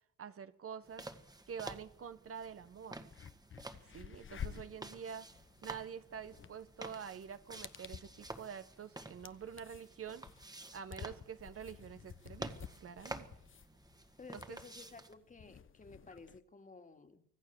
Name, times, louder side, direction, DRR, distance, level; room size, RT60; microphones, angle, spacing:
voice 1, 0.2-1.1 1.5-3.0 3.8-5.3 5.6-10.2 10.7-13.3 14.5-14.6, right 7 dB, 50° right, 12 dB, 1.2 m, -47 dB
sound 1, 0.8-15.1, right 2 dB, 15° right, 1.8 m, -51 dB
sound 2, 2.6-2.7 3.0-16.4, left 8 dB, 40° left, 1.1 m, -52 dB
voice 2, 14.2-17.3, left 4 dB, 25° left, 7 dB, 2.4 m, -55 dB
25.5 x 16.5 x 7.0 m, 0.71 s
cardioid pair, 90°, 30 cm